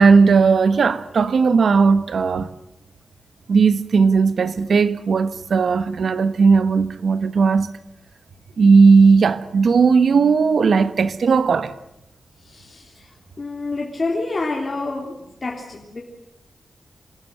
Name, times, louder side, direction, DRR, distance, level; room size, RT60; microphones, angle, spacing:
voice 1, 0.0-2.5 3.5-7.7 8.6-11.7, right 5 dB, 70° right, 1.3 m, -16 dB
voice 2, 12.4-16.0, left 3 dB, 35° left, 3.3 m, -28 dB
26.5 x 16.5 x 7.8 m
wide cardioid pair, 120°, 0 cm